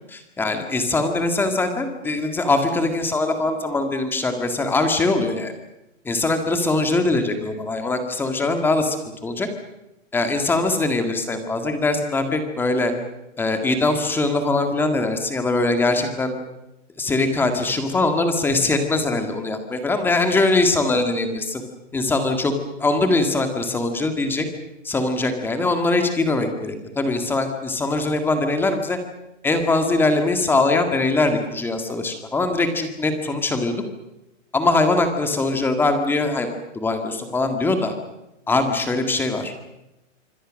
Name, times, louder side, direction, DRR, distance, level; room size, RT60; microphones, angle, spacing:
voice 1, 0.1-5.5 6.1-9.0 9.2-9.5 10.1-12.9 13.4-16.3 17.0-21.6 21.9-22.5 22.8-24.5 24.8-29.0 29.4-33.7 34.5-36.5 36.7-37.9 38.5-39.5, left 2 dB, 5° left, 6 dB, 1.8 m, -22 dB
25.5 x 25.0 x 6.4 m, 0.92 s
hypercardioid pair, 165°, 39 cm